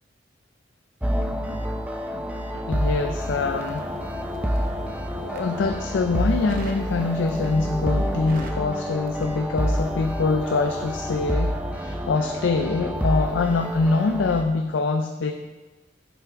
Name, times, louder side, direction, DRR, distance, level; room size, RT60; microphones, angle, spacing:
sound 1, 1.0-14.4, equal, 5° right, 0.5 m, -28 dB
voice 1, 2.5-3.9 5.2-15.3, left 3 dB, 70° left, 6 dB, 0.4 m, -24 dB
sound 2, 3.3-8.4, equal, 10° left, 1.0 m, -42 dB
Crackle, 3.5-4.7 5.2-5.8 6.5-6.9 7.3-7.7 8.0-10.0 10.2-10.5, right 1 dB, 45° right, 0.8 m, -40 dB
7.1 x 5.7 x 4.8 m, 1.2 s
head